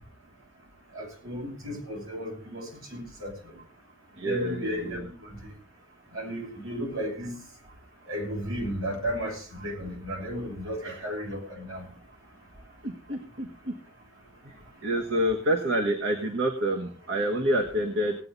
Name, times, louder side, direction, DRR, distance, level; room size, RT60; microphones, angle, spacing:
voice 1, 0.9-3.6 4.2-5.6 6.1-7.3 8.1-11.9, equal, 90° right, 0 dB, 5.9 m, -34 dB
voice 2, 4.2-5.1 10.8-11.0 12.8-13.7 14.8-18.1, equal, 70° right, 1 dB, 1.5 m, -28 dB
18.0 x 8.8 x 4.1 m, 0.42 s
head